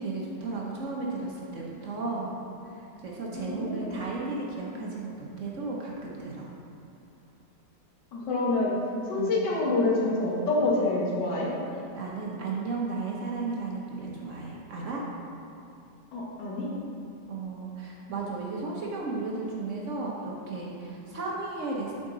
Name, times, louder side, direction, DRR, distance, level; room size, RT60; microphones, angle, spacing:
voice 1, 0.0-6.5 9.1-9.5 11.9-15.0 17.3-21.9, right 3 dB, 55° right, -3 dB, 1.1 m, -34 dB
voice 2, 3.3-4.1 8.1-8.7 9.1-11.5 16.1-16.7, left 2 dB, 85° left, -4 dB, 1.9 m, -27 dB
7.6 x 5.1 x 3.8 m, 2.5 s
omnidirectional pair, 1.8 m